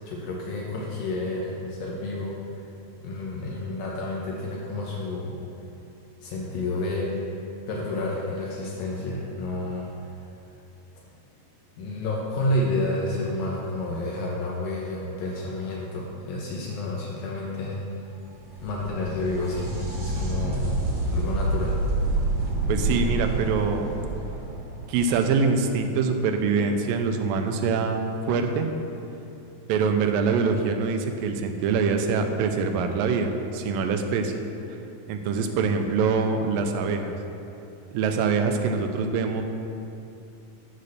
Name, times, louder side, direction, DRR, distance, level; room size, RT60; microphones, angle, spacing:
voice 1, 0.1-2.4 3.0-5.3 6.2-7.1 7.7-10.1 11.8-17.8 18.6-19.7 20.0-20.6 21.1-21.8, left 2 dB, 80° left, -4 dB, 2.7 m, -30 dB
sound 1, 18.1-25.7 29.1-29.2 30.3-30.4, right 2 dB, 45° right, 2.1 m, -28 dB
voice 2, 22.7-23.9 24.9-28.7 29.7-34.4 34.7-34.8 35.1-37.1 37.9-39.4, right 5 dB, 85° right, 5 dB, 2.4 m, -24 dB
11.0 x 4.2 x 6.5 m, 2.8 s
omnidirectional pair, 4.0 m